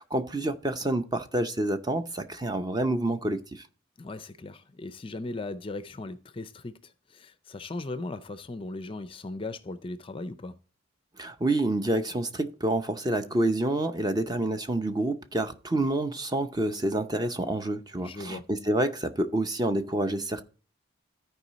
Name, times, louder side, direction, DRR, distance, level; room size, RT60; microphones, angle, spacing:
voice 1, 0.0-3.6 11.2-20.4, right 1 dB, 20° right, 0.6 m, -28 dB
voice 2, 4.0-10.6 18.0-18.5, left 2 dB, 25° left, 0.4 m, -38 dB
13.5 x 4.7 x 4.0 m
head